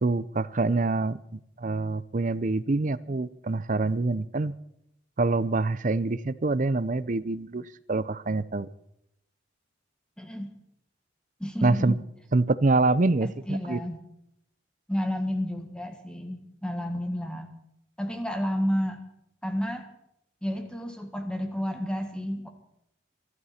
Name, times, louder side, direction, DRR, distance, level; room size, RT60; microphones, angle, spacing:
voice 1, 0.0-4.6 5.2-8.7 11.6-12.0 12.3-13.8, right 3 dB, 40° right, 18 dB, 0.6 m, -26 dB
voice 2, 10.2-10.5 11.4-12.0 13.2-14.0 14.9-17.5 18.0-19.0 19.4-19.8 20.4-22.5, equal, 5° left, 5 dB, 1.7 m, -31 dB
24.5 x 12.5 x 4.3 m, 0.79 s
head